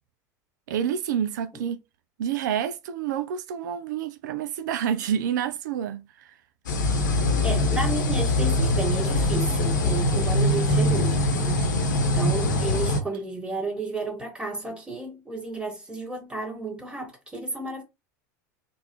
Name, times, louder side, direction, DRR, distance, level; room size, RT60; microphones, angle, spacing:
voice 1, 0.7-1.8 2.2-6.4, right 9 dB, 80° right, 0.4 m, -28 dB
sound 1, 6.7-13.0, left 1 dB, 90° left, 1.0 m, -23 dB
voice 2, 7.4-11.8 12.1-17.8, right 2 dB, 10° right, 1.8 m, -32 dB
3.9 x 2.5 x 3.0 m
hypercardioid pair, 95°, 10 cm